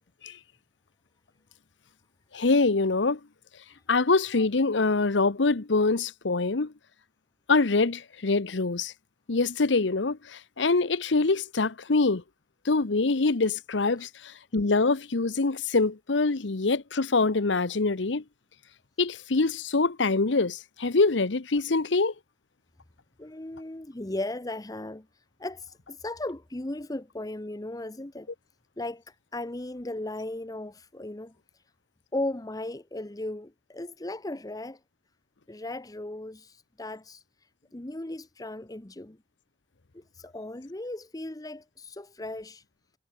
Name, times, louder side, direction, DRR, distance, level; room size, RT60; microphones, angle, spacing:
voice 1, 2.3-3.2 3.9-6.7 7.5-8.9 9.3-12.2 12.6-18.2 19.0-22.1, left 3 dB, 75° left, 0.9 m, -24 dB
voice 2, 23.2-25.1 25.4-28.3 28.8-31.3 32.1-34.8 35.5-37.2 37.7-39.2 39.9-42.6, left 1 dB, 20° left, 0.9 m, -36 dB
head